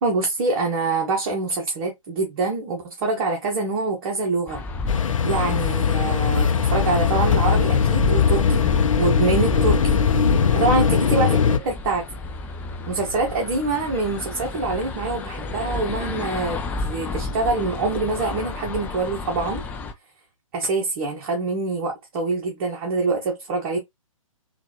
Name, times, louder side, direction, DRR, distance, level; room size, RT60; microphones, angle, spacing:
voice 1, 0.0-4.6 5.0-8.6 9.0-10.0 10.6-12.0 12.9-19.6 20.5-23.8, right 3 dB, 40° right, 1.1 m, -25 dB
sound 1, 4.5-19.9, left 3 dB, 10° left, 0.3 m, -31 dB
sound 2, 4.9-11.6, left 6 dB, 70° left, 0.7 m, -20 dB
4.0 x 2.5 x 2.8 m
figure-of-eight pair, 130°, 18 cm